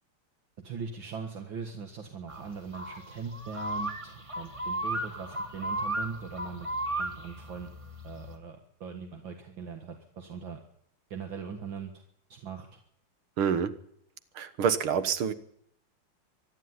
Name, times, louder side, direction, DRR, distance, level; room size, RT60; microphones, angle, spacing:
voice 1, 0.6-6.7 7.0-7.7 8.0-10.6 11.1-12.0 12.3-12.8, right 5 dB, 65° right, 5 dB, 2.5 m, -40 dB
sound 1, 2.3-8.4, right 1 dB, 15° right, 1.6 m, -35 dB
voice 2, 13.4-13.8 14.4-15.3, right 7 dB, 85° right, 13 dB, 2.2 m, -27 dB
25.0 x 11.0 x 9.7 m, 0.69 s
omnidirectional pair, 2.2 m